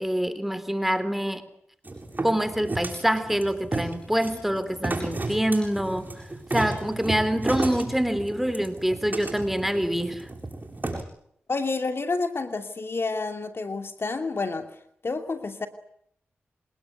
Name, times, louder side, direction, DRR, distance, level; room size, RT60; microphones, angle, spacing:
voice 1, 0.0-1.5 2.2-10.3, equal, 5° right, 12 dB, 3.7 m, -26 dB
sound 1, 1.8-11.0, right 2 dB, 35° right, 7.7 m, -33 dB
voice 2, 11.5-14.7 15.0-15.7, left 3 dB, 55° left, 7 dB, 2.7 m, -29 dB
27.5 x 19.5 x 9.6 m, 0.71 s
cardioid pair, 45°, 5 cm